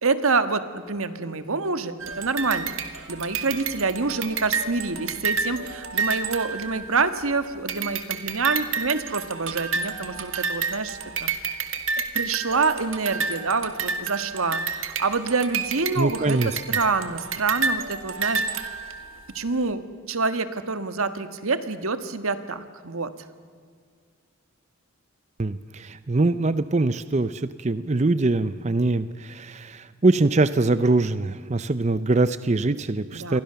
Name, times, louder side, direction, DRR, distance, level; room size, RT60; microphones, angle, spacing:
voice 1, 0.0-2.7 3.1-11.6 12.0-18.7 19.3-23.1 33.1-33.4, right 4 dB, 80° right, 10 dB, 1.6 m, -27 dB
sound 1, 2.0-7.3 7.7-19.2, right 5 dB, 65° right, 2.0 m, -30 dB
voice 2, 16.0-16.6 25.4-33.4, right 2 dB, 30° right, 13 dB, 0.6 m, -23 dB
28.0 x 23.0 x 6.9 m, 2.1 s
head